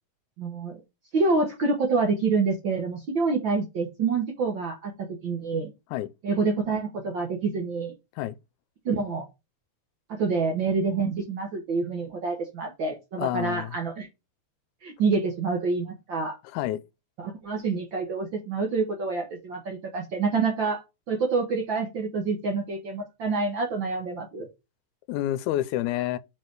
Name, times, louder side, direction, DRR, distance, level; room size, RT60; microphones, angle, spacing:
voice 1, 0.4-0.8 1.1-5.7 6.2-7.9 8.8-9.3 10.1-14.1 14.8-16.4 17.2-24.5, right 4 dB, 70° right, 1.1 m, -27 dB
voice 2, 13.2-13.8 16.5-16.8 25.1-26.2, left 13 dB, 80° left, 1.9 m, -28 dB
4.9 x 4.5 x 4.6 m
omnidirectional pair, 3.6 m